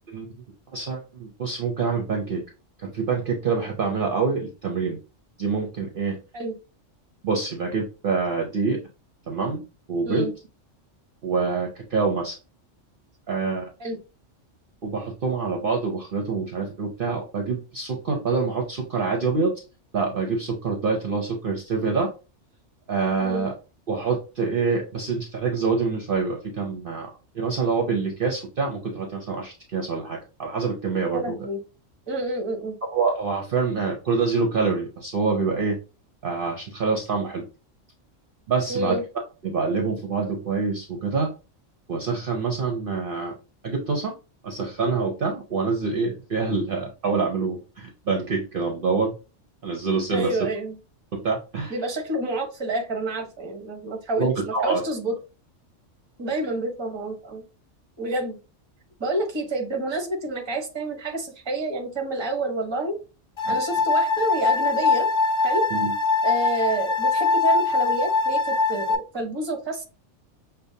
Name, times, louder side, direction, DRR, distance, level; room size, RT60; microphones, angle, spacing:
voice 1, 0.7-2.4 2.8-5.0 5.4-6.2 7.2-8.8 9.3-9.6 9.9-10.3 11.2-12.4 13.3-13.7 14.8-19.5 19.9-22.1 22.9-23.5 23.9-31.4 32.9-35.8 36.2-37.5 38.5-39.0 39.4-41.3 41.9-43.3 43.6-44.1 44.4-49.1 49.6-50.4 51.1-51.7 54.2-54.8 63.5-63.6 65.7-65.9, right 4 dB, 55° right, 1 dB, 0.8 m, -26 dB
voice 2, 31.1-31.6 32.1-32.8 38.7-39.0 50.1-50.8 51.7-55.1 56.2-57.4 58.0-58.4 59.0-63.0 63.5-65.1 65.4-65.7 66.2-69.8, right 2 dB, 25° right, 3 dB, 0.8 m, -28 dB
sound 1, 63.4-69.0, left 4 dB, 50° left, 0.3 m, -22 dB
6.5 x 2.2 x 2.6 m, 0.32 s
omnidirectional pair, 1.3 m